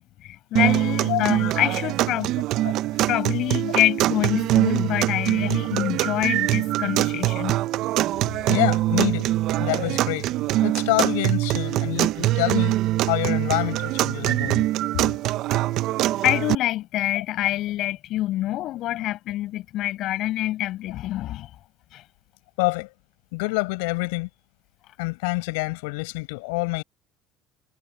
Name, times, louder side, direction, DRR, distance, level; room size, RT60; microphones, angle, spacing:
voice 1, 0.0-2.3 3.1-7.6 16.2-21.5 21.9-22.0, left 15 dB, 60° left, 7.9 m, -26 dB
sound 1, 0.6-16.6, right 15 dB, 65° right, 1.0 m, -23 dB
voice 2, 8.5-9.3 9.6-10.3 10.6-12.8 13.1-14.7 22.6-22.9 23.3-24.3 25.0-26.8, left 28 dB, 80° left, 7.6 m, -26 dB
hypercardioid pair, 75°, 0 cm